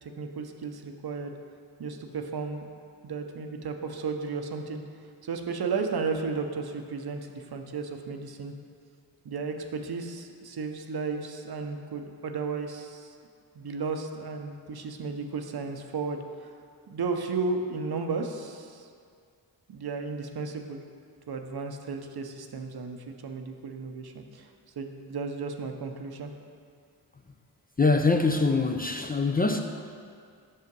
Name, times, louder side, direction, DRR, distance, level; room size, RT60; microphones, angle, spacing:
voice 1, 0.0-1.3 1.8-2.7 3.0-4.8 5.2-8.5 9.2-13.1 13.6-16.5 16.9-18.9 19.7-20.8 21.3-26.3, right 4 dB, 55° right, 5 dB, 0.7 m, -34 dB
voice 2, 27.8-29.6, left 3 dB, 20° left, 4 dB, 0.4 m, -23 dB
5.7 x 5.5 x 5.3 m, 2.2 s
cardioid pair, 40°, 44 cm